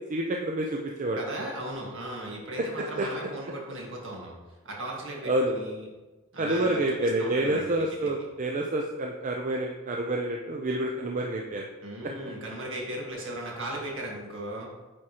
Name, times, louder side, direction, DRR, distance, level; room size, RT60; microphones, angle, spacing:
voice 1, 0.1-1.2 3.0-3.1 5.2-5.6 6.4-11.6, right 1 dB, 35° right, 1 dB, 0.5 m, -28 dB
voice 2, 1.2-4.3 4.6-5.8 6.3-7.6 11.8-14.7, right 1 dB, 60° right, -2 dB, 1.7 m, -37 dB
8.8 x 4.8 x 2.9 m, 1.2 s
head